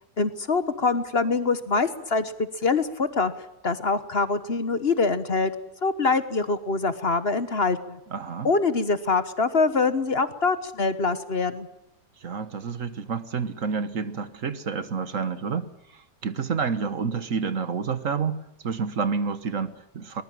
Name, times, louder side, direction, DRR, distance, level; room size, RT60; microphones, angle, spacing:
voice 1, 0.2-2.3 2.6-3.3 3.6-5.5 5.8-8.0 8.4-11.7, left 4 dB, 45° left, 1.3 m, -24 dB
voice 2, 8.1-8.5 12.2-20.2, right 5 dB, 60° right, 1.6 m, -29 dB
22.5 x 19.5 x 7.6 m
omnidirectional pair, 1.6 m